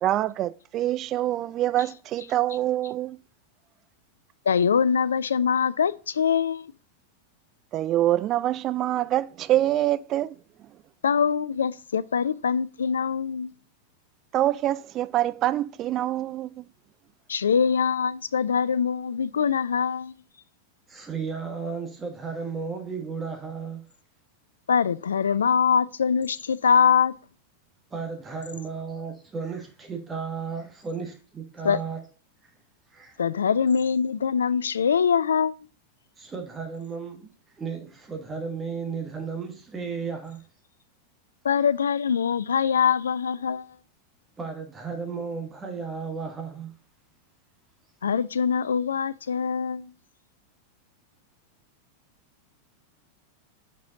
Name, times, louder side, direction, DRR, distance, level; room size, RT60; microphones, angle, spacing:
voice 1, 0.0-3.2 7.7-10.4 14.3-16.6, right 13 dB, 35° right, 0.3 m, -25 dB
voice 2, 4.5-6.7 11.0-13.5 17.3-20.1 24.7-27.1 31.6-31.8 33.2-35.6 41.4-43.7 48.0-49.9, left 7 dB, 70° left, 0.3 m, -23 dB
voice 3, 20.9-23.8 27.9-32.0 32.9-33.2 36.2-37.3 37.6-40.4 44.4-46.7, right 5 dB, 15° right, 1.3 m, -34 dB
6.1 x 4.7 x 3.7 m
figure-of-eight pair, 90°, 0 cm